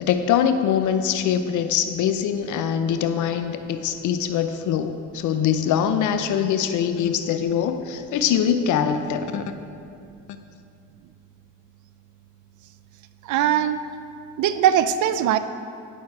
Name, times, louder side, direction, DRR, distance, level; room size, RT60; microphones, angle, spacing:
voice 1, 0.0-9.5, left 8 dB, 80° left, 9 dB, 0.6 m, -23 dB
voice 2, 13.2-13.8 14.4-15.4, right 10 dB, 75° right, 11 dB, 0.5 m, -20 dB
11.0 x 6.2 x 4.6 m, 2.4 s
cardioid pair, 90°, 30 cm